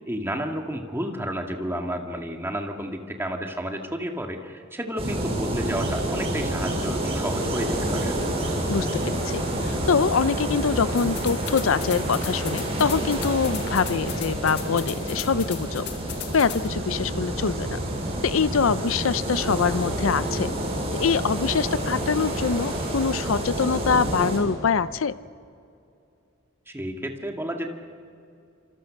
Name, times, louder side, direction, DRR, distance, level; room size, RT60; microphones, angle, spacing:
voice 1, 0.1-8.1 26.7-27.7, equal, 10° right, 2 dB, 2.1 m, -31 dB
sound 1, 5.0-24.4, right 1 dB, 30° right, 7.0 m, -28 dB
voice 2, 8.7-15.9 16.3-17.8 18.2-20.5 20.9-25.2, left 5 dB, 75° left, 16 dB, 0.6 m, -24 dB
sound 2, 11.0-16.7, left 10 dB, 55° left, 1.7 m, -39 dB
28.5 x 26.5 x 6.5 m, 2.5 s
head